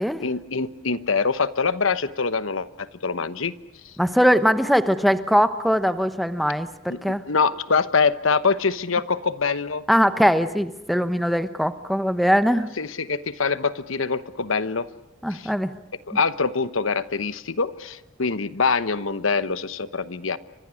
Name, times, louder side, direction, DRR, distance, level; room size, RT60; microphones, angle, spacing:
voice 1, 0.2-3.5 3.8-3.9 6.9-9.8 12.8-14.9 15.3-15.5 16.1-20.4, left 4 dB, 80° left, 14 dB, 1.1 m, -24 dB
voice 2, 4.0-7.2 9.9-12.7 15.2-15.7, equal, ahead, 10 dB, 1.0 m, -21 dB
30.0 x 25.0 x 6.4 m, 0.87 s
head